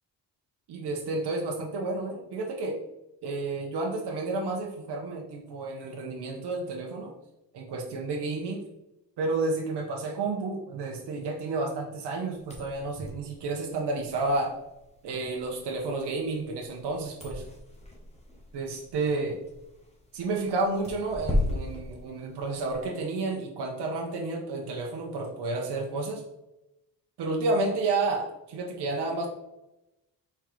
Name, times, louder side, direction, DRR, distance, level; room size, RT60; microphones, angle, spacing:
voice 1, 0.7-2.8 3.2-7.1 7.5-8.6 9.2-14.5 15.0-17.4 18.5-19.4 20.1-26.2 27.2-29.3, right 3 dB, 75° right, 0 dB, 0.8 m, -31 dB
sound 1, 12.3-22.8, left 1 dB, 15° left, 0.9 m, -36 dB
4.5 x 3.7 x 3.1 m, 0.92 s
cardioid pair, 105°, 40 cm